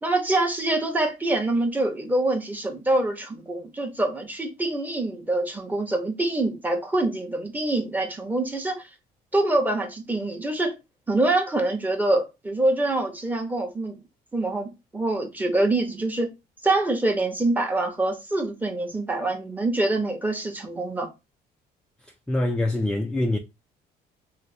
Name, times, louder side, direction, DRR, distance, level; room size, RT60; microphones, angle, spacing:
voice 1, 0.0-8.9 9.3-10.7 11.1-14.0 14.3-16.3 16.6-21.1, right 2 dB, 10° right, 0.9 m, -25 dB
voice 2, 22.3-23.4, left 1 dB, 5° left, 0.3 m, -24 dB
3.2 x 2.0 x 4.0 m
cardioid pair, 110°, 17 cm